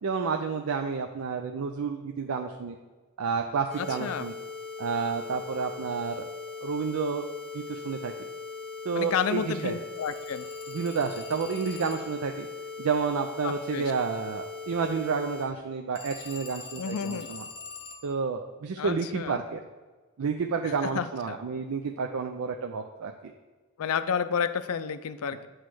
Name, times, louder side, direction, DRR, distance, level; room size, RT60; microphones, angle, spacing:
voice 1, 0.0-2.8 3.2-4.3 4.8-6.3 6.6-7.3 7.5-8.1 8.9-9.8 10.7-12.5 12.8-17.4 18.0-19.6 20.2-23.3, right 5 dB, 75° right, 4 dB, 0.4 m, -30 dB
sound 1, 3.7-15.5, left 4 dB, 5° left, 0.9 m, -40 dB
voice 2, 3.8-4.3 8.9-10.5 13.4-13.9 16.8-17.3 18.8-19.4 20.8-21.4 23.8-25.5, left 7 dB, 85° left, 12 dB, 0.4 m, -31 dB
Telephone, 10.0-12.3 16.0-18.2, left 4 dB, 25° left, 0.5 m, -44 dB
8.2 x 3.1 x 6.0 m, 1.3 s
head